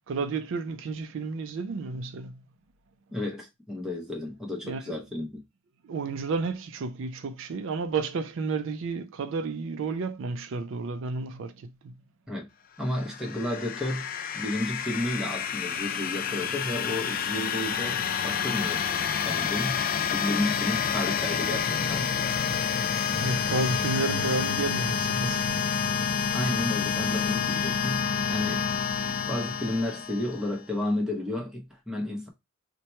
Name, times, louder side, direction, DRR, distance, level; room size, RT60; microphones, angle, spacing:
voice 1, 0.1-2.4 4.6-5.0 5.8-11.9 23.0-25.6, right 4 dB, 65° right, 0.4 m, -31 dB
voice 2, 3.1-5.4 12.3-12.5 12.8-14.1 14.3-18.9 19.2-19.8 20.1-22.1 26.3-28.0 28.3-28.7 29.3-32.3, left 1 dB, 5° right, 0.9 m, -32 dB
sound 1, 12.9-30.6, left 7 dB, 45° left, 0.3 m, -29 dB
2.9 x 2.2 x 4.2 m
head